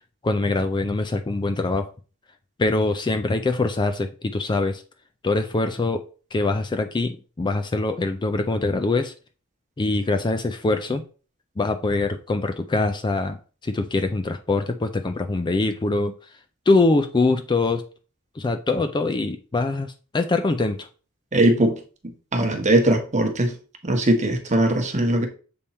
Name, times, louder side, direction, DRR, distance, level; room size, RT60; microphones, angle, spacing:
voice 1, 0.2-1.9 2.6-4.8 5.2-6.0 6.3-9.1 9.8-11.0 11.6-13.4 13.6-16.1 16.7-17.8 18.4-20.9, left 3 dB, 20° left, 0.4 m, -23 dB
voice 2, 21.3-21.8 22.3-23.5 23.8-25.3, right 1 dB, 35° right, 1.1 m, -20 dB
7.0 x 3.5 x 4.2 m
head